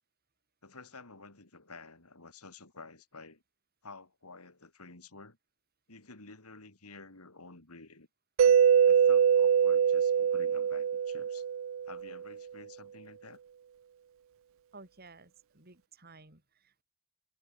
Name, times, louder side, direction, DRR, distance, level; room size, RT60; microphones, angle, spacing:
voice 1, 0.6-3.4 3.8-5.4 5.9-8.1 8.4-8.6 8.9-11.4 11.9-13.4, left 3 dB, 80° left, 3.7 m, -51 dB
Mallet percussion, 8.4-12.2, right 8 dB, 60° right, 0.3 m, -24 dB
voice 2, 14.7-16.8, right 3 dB, 45° right, 4.6 m, -54 dB
head